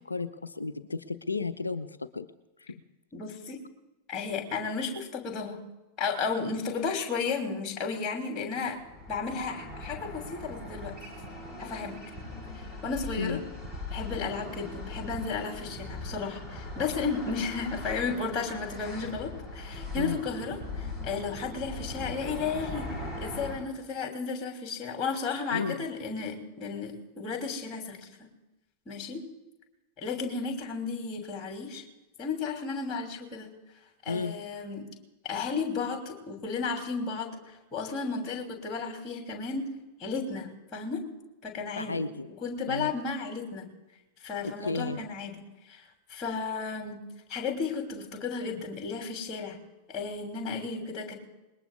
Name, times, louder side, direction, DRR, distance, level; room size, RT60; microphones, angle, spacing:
voice 1, 0.0-2.3 2.6-2.7 13.2-13.4 19.9-20.2 25.5-25.8 34.1-34.3 41.8-42.3 42.7-42.9 44.4-45.0, left 4 dB, 80° left, 13 dB, 0.6 m, -33 dB
voice 2, 3.1-3.6 4.1-5.6 6.0-8.8 9.1-10.9 11.6-12.0 12.5-13.4 13.9-22.9 23.2-28.3 28.9-29.2 30.0-31.8 32.2-33.5 34.0-34.8 35.2-37.3 37.7-39.7 40.0-41.0 41.4-42.0 42.4-43.7 44.2-45.3 45.7-45.8 46.1-47.0 47.3-49.6 49.9-51.1, left 5 dB, 30° left, 2 dB, 3.1 m, -33 dB
sound 1, 8.6-23.5, left 2 dB, 5° right, 7.4 m, -40 dB
28.0 x 20.5 x 2.4 m, 1.1 s
figure-of-eight pair, 90°, 0 cm